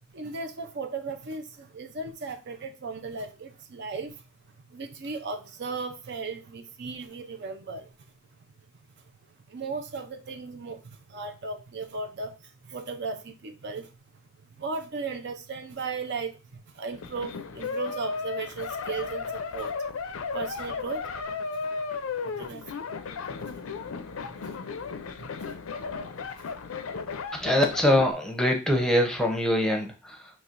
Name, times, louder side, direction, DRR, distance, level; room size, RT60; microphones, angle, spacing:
voice 1, 0.1-4.2 4.7-7.9 9.5-13.9 14.6-16.4 16.7-19.8 20.3-21.1 22.2-22.8 23.2-23.5 24.2-24.6 25.2-26.5 26.8-27.0, right 4 dB, 55° right, 6 dB, 0.6 m, -36 dB
sound 1, 16.9-28.1, left 5 dB, 70° left, 0.5 m, -35 dB
voice 2, 27.3-30.3, left 1 dB, 5° left, 2 dB, 0.7 m, -24 dB
6.0 x 3.1 x 2.5 m, 0.30 s
head